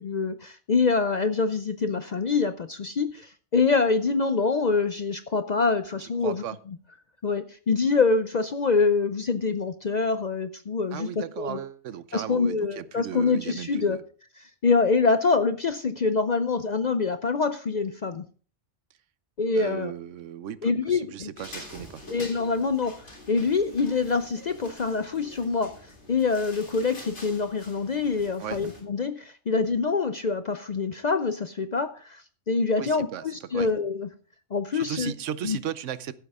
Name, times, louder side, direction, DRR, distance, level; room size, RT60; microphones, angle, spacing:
voice 1, 0.0-6.4 7.2-11.1 11.4-11.6 12.1-14.0 14.6-18.2 19.4-19.9 20.6-21.3 22.1-34.1 34.5-35.1 35.4-35.6, left 4 dB, 50° left, 10 dB, 0.5 m, -25 dB
voice 2, 6.2-6.6 10.9-14.0 19.5-22.0 28.4-28.6 32.8-33.2 33.5-33.7 34.7-36.1, right 10 dB, 75° right, 16 dB, 1.0 m, -36 dB
sound 1, 21.4-28.8, left 1 dB, 65° left, 3.8 m, -46 dB
15.5 x 8.3 x 3.6 m, 0.41 s
omnidirectional pair, 1.3 m